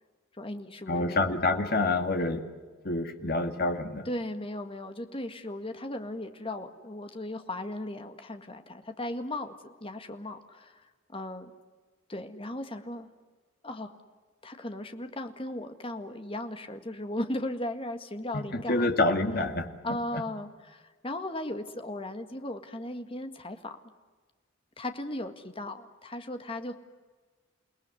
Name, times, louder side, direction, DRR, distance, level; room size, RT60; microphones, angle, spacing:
voice 1, 0.4-1.2 4.1-10.8 11.1-11.5 12.1-13.1 13.6-14.0 14.4-18.9 19.8-23.8 24.8-26.8, left 1 dB, 30° left, 7 dB, 1.9 m, -37 dB
voice 2, 0.9-2.4 2.8-4.1 18.3-19.7 20.1-20.2, left 2 dB, 50° left, 6 dB, 2.1 m, -27 dB
29.0 x 18.5 x 9.9 m, 1.4 s
head